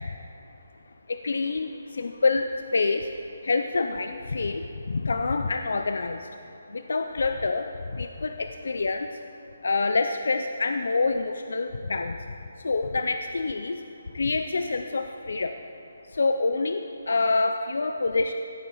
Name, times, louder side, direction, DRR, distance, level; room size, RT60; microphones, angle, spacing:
voice 1, 1.1-3.0 3.4-6.2 6.7-9.1 9.6-12.2 12.6-13.8 14.1-15.5 16.1-18.3, left 3 dB, 70° left, 7 dB, 0.4 m, -26 dB
15.5 x 8.6 x 3.8 m, 2.9 s
hypercardioid pair, 175°, 0 cm